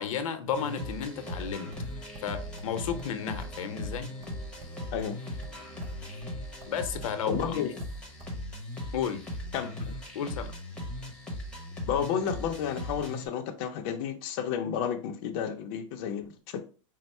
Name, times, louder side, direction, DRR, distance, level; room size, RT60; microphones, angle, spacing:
voice 1, 0.0-1.8 2.2-4.1 6.0-6.2 6.7-7.6 8.9-9.2 10.1-10.5, left 7 dB, 80° left, 0.7 m, -33 dB
sound 1, 0.5-13.3, left 1 dB, 5° left, 0.8 m, -38 dB
sound 2, 1.3-1.9 2.1-2.3 2.6-2.7 3.0-3.1 3.4-3.5 3.8-5.1 5.4-6.0 6.2-6.8 7.0-8.3, right 1 dB, 20° right, 0.6 m, -50 dB
voice 2, 4.9-5.2 7.3-7.8 9.5-9.9 11.9-16.6, left 8 dB, 40° left, 0.5 m, -32 dB
4.3 x 2.0 x 4.1 m
supercardioid pair, 160°, 17 cm